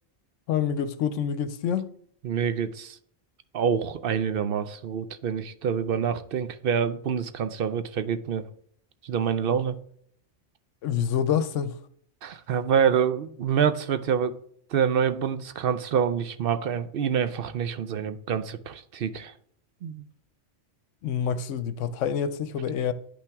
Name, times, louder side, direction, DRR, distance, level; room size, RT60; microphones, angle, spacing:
voice 1, 0.5-1.9 10.8-11.8 21.0-22.9, left 8 dB, 80° left, 1.0 m, -27 dB
voice 2, 2.2-3.0 3.5-8.5 9.0-9.8 12.2-14.4 14.7-19.3 19.8-20.0, right 7 dB, 60° right, 0.6 m, -26 dB
10.0 x 5.8 x 3.5 m
omnidirectional pair, 1.3 m